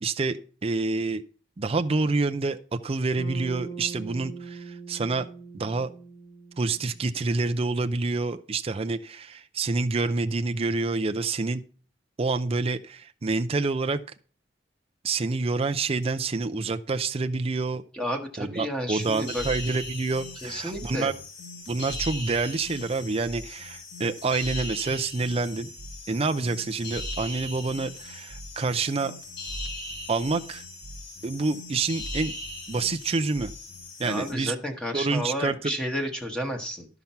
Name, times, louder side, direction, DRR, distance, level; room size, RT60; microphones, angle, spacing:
voice 1, 0.0-1.2 1.6-5.3 5.5-5.9 6.6-11.6 12.2-14.0 15.0-17.8 18.4-21.1 21.7-25.7 26.1-29.1 30.1-30.6 31.2-32.3 32.7-33.5 34.0-34.6 34.9-35.7, right 3 dB, 30° right, 8 dB, 0.5 m, -27 dB
Bass guitar, 3.2-7.5, right 5 dB, 85° left, 2.5 m, -42 dB
voice 2, 17.9-19.4 20.4-21.1 34.0-36.9, equal, 5° left, 2 dB, 1.2 m, -31 dB
sound 1, 19.0-34.3, left 1 dB, 70° left, 3.5 m, -39 dB
12.0 x 5.9 x 5.5 m, 0.41 s
head